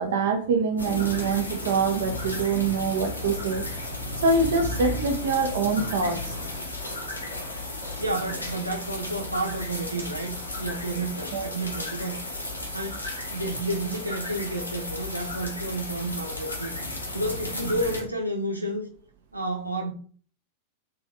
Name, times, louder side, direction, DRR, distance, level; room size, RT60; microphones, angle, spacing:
voice 1, 0.0-3.7 4.2-6.3 11.3-11.5, right 4 dB, 60° right, 0.8 m, -25 dB
sound 1, 0.8-18.0, left 2 dB, 85° left, 1.0 m, -34 dB
voice 2, 7.6-12.2 12.7-13.0 13.3-16.7 17.1-18.9 19.3-19.9, right 1 dB, 85° right, 0.8 m, -31 dB
3.6 x 3.4 x 2.8 m
figure-of-eight pair, 90°, 0 cm